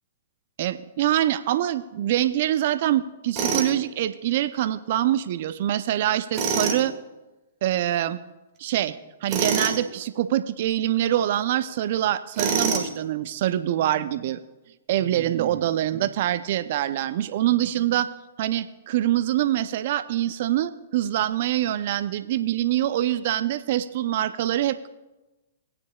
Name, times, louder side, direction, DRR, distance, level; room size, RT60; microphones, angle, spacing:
voice 1, 0.6-6.9 7.6-8.2 8.6-9.0 9.2-14.4 14.9-18.1 18.4-24.9, right 12 dB, 55° right, 13 dB, 0.6 m, -24 dB
Tools, 3.4-3.7 6.3-6.8 9.3-9.8 12.4-13.0, right 5 dB, 35° right, 2.1 m, -24 dB
18.5 x 9.7 x 2.4 m, 1.1 s
hypercardioid pair, 120°, 0 cm